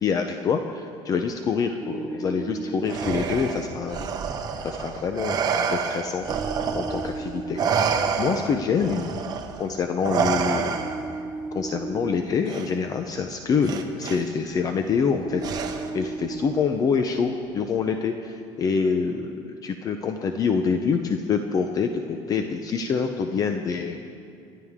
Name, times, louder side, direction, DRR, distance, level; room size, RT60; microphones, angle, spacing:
voice 1, 0.0-4.1 4.6-6.4 6.7-9.2 9.6-10.8 11.5-15.4 15.9-24.0, left 5 dB, 35° left, 6 dB, 0.7 m, -26 dB
sound 1, 1.8-3.2 6.3-7.7 10.8-12.2 15.2-16.6, right 4 dB, 20° right, 0.6 m, -34 dB
Respiratory sounds, 2.9-7.2 7.6-11.2 12.5-12.7 13.6-14.2 15.4-16.1, right 6 dB, 40° right, 1.1 m, -28 dB
28.5 x 11.0 x 3.7 m, 2.5 s
cardioid pair, 140°, 10 cm